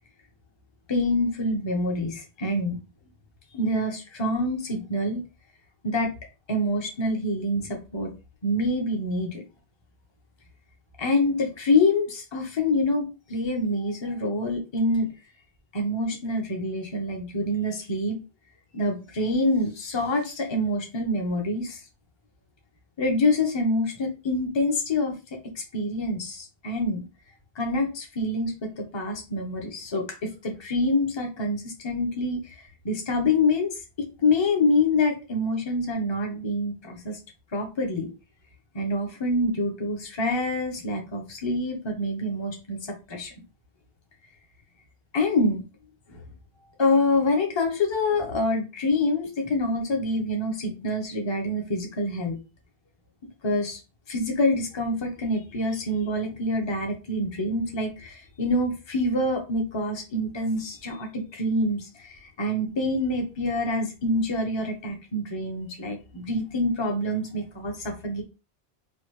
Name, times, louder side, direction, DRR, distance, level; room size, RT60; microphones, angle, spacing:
voice 1, 0.9-2.8 3.5-5.2 5.8-6.1 6.5-8.1 8.4-9.4 11.0-15.1 15.7-18.2 18.7-21.8 23.0-25.1 25.5-27.0 27.6-32.6 32.8-37.2 37.5-38.1 38.7-42.8 43.1-43.3 45.1-45.6 46.1-46.2 46.8-52.4 53.4-53.8 54.1-68.2, left 2 dB, 30° left, 3 dB, 0.8 m, -26 dB
3.2 x 2.4 x 3.1 m, 0.29 s
omnidirectional pair, 1.1 m